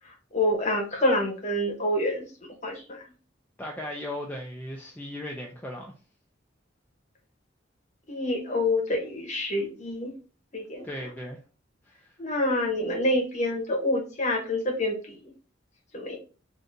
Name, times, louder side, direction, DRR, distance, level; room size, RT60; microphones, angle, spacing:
voice 1, 0.3-2.3 2.6-3.0 8.1-10.1 10.5-10.8 12.2-15.2 15.9-16.2, left 1 dB, 35° left, 1.0 m, -27 dB
voice 2, 3.6-5.9 10.8-11.4 11.9-12.1, left 1 dB, 10° left, 0.4 m, -37 dB
3.6 x 2.6 x 2.6 m
head